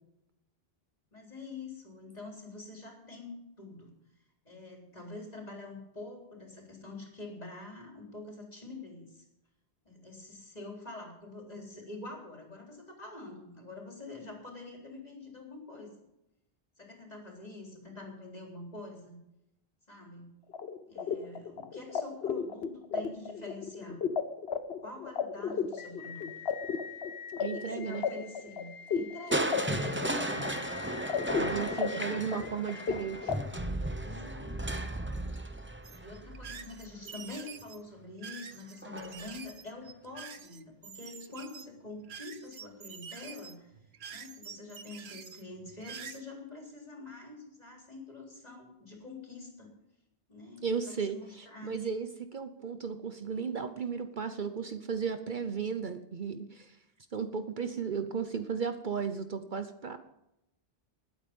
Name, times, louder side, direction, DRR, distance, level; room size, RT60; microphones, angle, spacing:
voice 1, 1.1-3.9 4.4-9.2 9.8-15.9 16.8-19.2 19.9-20.3 20.9-24.0 24.8-26.3 27.5-30.5 31.7-32.1 34.0-34.6 36.0-43.7 44.1-49.7 50.3-51.8, left 2 dB, 40° left, 0 dB, 4.0 m, -46 dB
sound 1, 20.5-33.3, left 6 dB, 75° left, 1.2 m, -35 dB
voice 2, 27.4-28.0 31.4-33.3 50.6-56.8 57.1-60.0, right 6 dB, 55° right, 9 dB, 0.9 m, -35 dB
Crushing, 29.3-37.3 38.8-39.3 39.8-39.9, right 1 dB, 10° right, 0.9 m, -35 dB
sound 2, 35.8-46.2, right 7 dB, 80° right, 1.2 m, -47 dB
20.5 x 8.9 x 5.3 m, 0.86 s
omnidirectional pair, 1.0 m